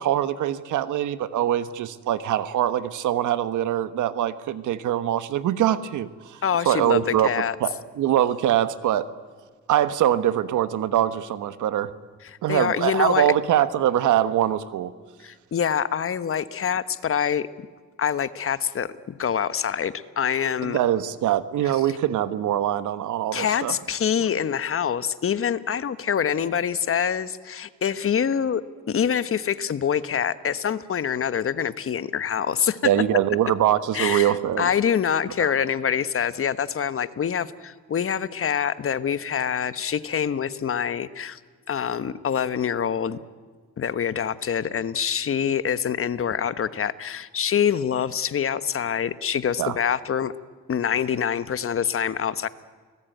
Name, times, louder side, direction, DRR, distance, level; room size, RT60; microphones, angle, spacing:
voice 1, 0.0-6.4 6.6-9.1 9.7-11.9 12.4-14.9 20.6-23.7 32.8-34.7 35.4-35.5 49.6-49.8, right 11 dB, 80° right, 13 dB, 1.4 m, -23 dB
voice 2, 6.4-7.5 12.2-13.3 15.2-17.5 18.0-20.8 23.3-28.6 28.9-32.8 33.9-41.4 41.7-43.2 43.8-50.3 50.7-52.5, left 8 dB, 45° left, 14 dB, 1.2 m, -25 dB
30.0 x 19.5 x 9.3 m, 1.5 s
cardioid pair, 90°, 30 cm